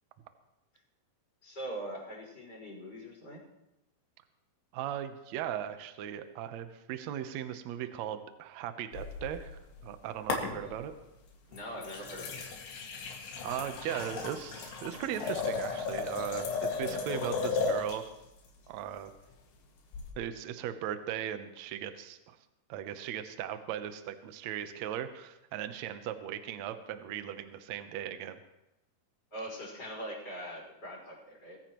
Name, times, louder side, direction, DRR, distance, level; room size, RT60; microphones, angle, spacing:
voice 1, 1.4-3.4 10.6-10.8 11.5-12.4 29.3-31.6, right 1 dB, 25° left, -3 dB, 5.9 m, -42 dB
voice 2, 4.7-10.9 13.4-18.0 18.7-19.1 20.2-22.4 22.7-28.4, right 10 dB, 85° right, 9 dB, 1.5 m, -38 dB
sound 1, 8.9-9.9 10.3-11.0 11.5-18.1 19.9-20.1, left 4 dB, 90° left, 4.1 m, -35 dB
23.5 x 14.5 x 3.1 m, 0.92 s
omnidirectional pair, 4.6 m